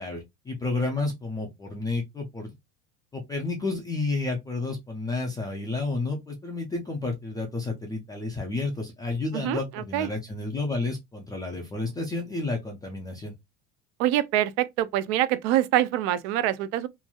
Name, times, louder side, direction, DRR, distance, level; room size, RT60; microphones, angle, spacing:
voice 1, 0.0-2.5 3.1-13.3, left 3 dB, 10° left, 0.3 m, -31 dB
voice 2, 9.3-10.1 14.0-16.9, right 13 dB, 70° right, 0.5 m, -25 dB
3.1 x 2.5 x 2.3 m
supercardioid pair, 140°, 36 cm